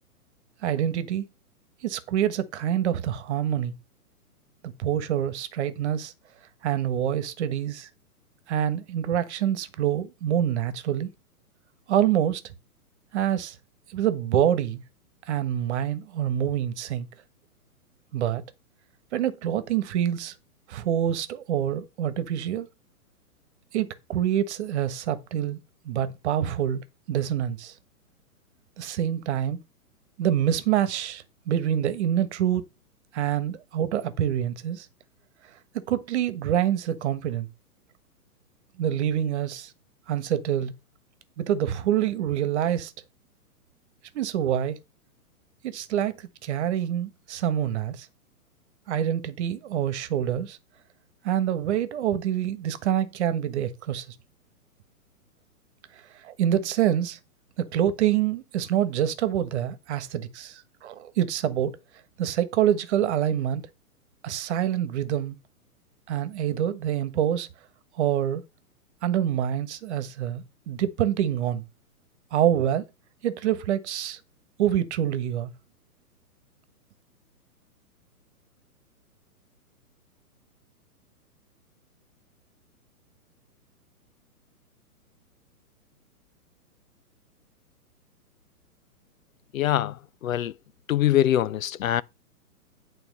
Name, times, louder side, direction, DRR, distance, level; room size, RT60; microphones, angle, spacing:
voice 1, 0.6-1.2 1.8-3.7 4.8-6.1 6.6-7.9 8.5-11.1 11.9-12.5 13.1-13.6 13.9-14.8 15.3-17.1 18.1-18.4 19.1-20.3 20.7-22.7 23.7-25.6 25.8-27.7 28.8-29.6 30.2-32.6 33.1-34.9 35.7-37.5 38.8-39.7 40.1-40.7 41.4-42.9 44.1-44.8 45.6-48.1 48.9-50.6 51.2-54.1 56.2-57.2 57.6-61.8 62.2-63.6 64.2-65.4 66.1-67.5 68.0-68.4 69.0-71.6 72.3-72.9 73.2-74.2 74.6-75.5, right 10 dB, 45° right, 1.4 m, -26 dB
voice 2, 89.5-89.9 90.2-90.5 90.9-92.0, left 12 dB, 60° left, 0.6 m, -23 dB
9.1 x 4.2 x 5.3 m
hypercardioid pair, 135°, 46 cm